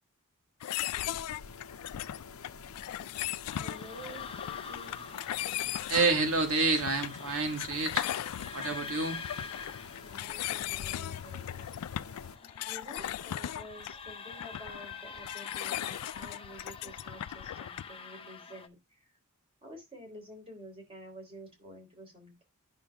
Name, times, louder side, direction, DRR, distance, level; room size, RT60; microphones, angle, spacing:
sound 1, 0.6-18.0, left 12 dB, 90° left, 0.3 m, -38 dB
sound 2, 0.9-12.4, left 5 dB, 70° left, 0.7 m, -49 dB
sound 3, 3.5-18.7, left 5 dB, 25° left, 0.6 m, -46 dB
voice 1, 3.5-5.0 10.0-11.6 12.6-18.8 19.6-22.4, equal, 25° right, 3.5 m, -49 dB
voice 2, 5.9-8.1 8.5-9.2, right 3 dB, 75° right, 1.7 m, -28 dB
10.5 x 6.0 x 2.3 m
head